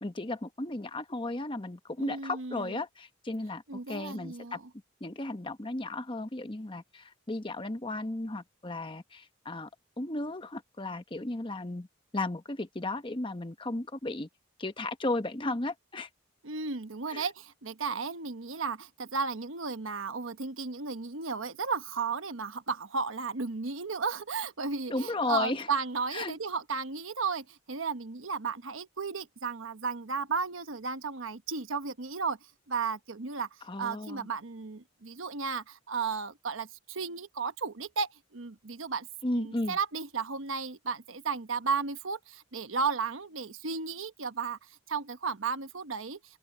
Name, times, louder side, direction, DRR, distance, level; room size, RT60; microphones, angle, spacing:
voice 1, 0.0-4.6 5.0-9.7 10.0-11.9 12.1-14.3 14.6-16.1 17.1-17.3 24.9-25.7 26.1-26.3 33.7-34.3 39.2-39.8, left 2 dB, 25° left, 1.0 m, -34 dB
voice 2, 2.0-2.7 3.7-4.6 16.4-32.4 32.7-33.5 33.8-39.1 39.3-46.2, right 5 dB, 80° right, 1.1 m, -34 dB
open air
head